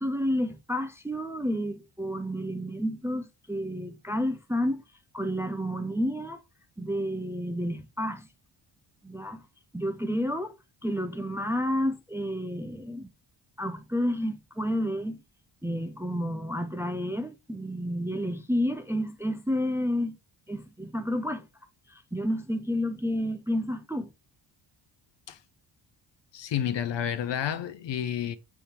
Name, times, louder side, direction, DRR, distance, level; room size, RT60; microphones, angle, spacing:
voice 1, 0.0-4.8 5.1-6.4 6.8-8.3 9.0-9.4 9.7-10.5 10.8-13.1 13.6-15.2 15.6-20.2 20.5-21.5 21.9-24.1, equal, 5° right, 0.5 m, -30 dB
voice 2, 26.3-28.3, left 9 dB, 60° left, 0.8 m, -30 dB
7.4 x 3.5 x 4.3 m
wide cardioid pair, 145°, 48 cm